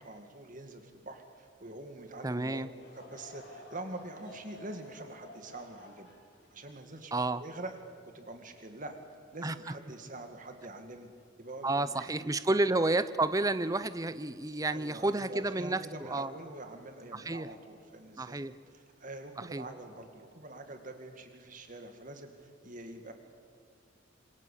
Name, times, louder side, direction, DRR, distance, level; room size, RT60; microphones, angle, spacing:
voice 1, 0.0-2.7 2.9-6.1 6.5-7.8 8.1-9.0 9.3-11.1 11.4-12.1 12.5-12.6 14.7-23.1, right 2 dB, 40° right, 6 dB, 2.1 m, -45 dB
voice 2, 2.2-2.7 7.1-7.4 9.4-9.8 11.6-16.3 17.1-17.5 18.2-18.5 19.5-19.6, right 2 dB, 15° right, 14 dB, 0.6 m, -30 dB
Laughter / Crowd, 2.7-8.2 8.7-8.8 9.6-9.9, left 2 dB, 60° left, 7.7 m, -53 dB
27.0 x 24.5 x 8.4 m, 2.2 s
head